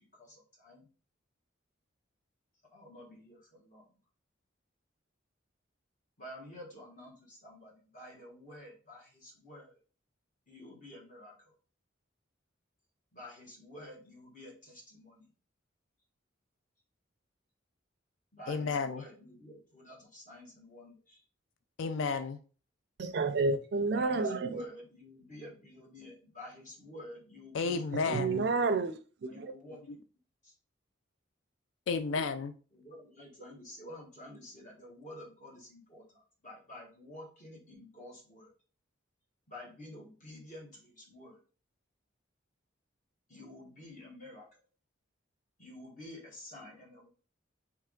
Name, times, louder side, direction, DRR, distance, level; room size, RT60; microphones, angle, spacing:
voice 1, 0.1-0.9 2.7-3.9 6.2-9.8 10.5-11.5 13.1-15.3 18.3-21.2 23.9-27.8 29.3-30.0 30.4-30.5 32.1-32.2 32.7-38.5 39.5-41.4 43.3-44.6 45.6-47.1, left 1 dB, 40° left, 1.3 m, -50 dB
voice 2, 18.5-19.1 21.8-22.4 27.5-28.5 31.9-32.5, left 4 dB, 75° left, 0.3 m, -32 dB
voice 3, 23.0-24.6 28.0-29.5, right 3 dB, 55° right, 0.4 m, -30 dB
3.3 x 3.0 x 3.6 m
head